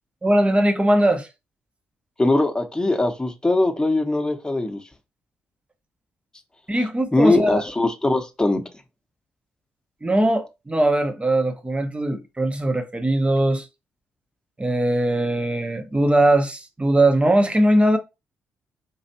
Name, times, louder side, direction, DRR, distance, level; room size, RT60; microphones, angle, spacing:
voice 1, 0.2-1.3 6.7-7.6 10.0-13.7 14.6-18.0, right 1 dB, 20° right, 1.1 m, -20 dB
voice 2, 2.2-4.8 7.1-8.6, left 2 dB, 15° left, 1.2 m, -21 dB
5.4 x 3.1 x 2.9 m
figure-of-eight pair, 40°, 6 cm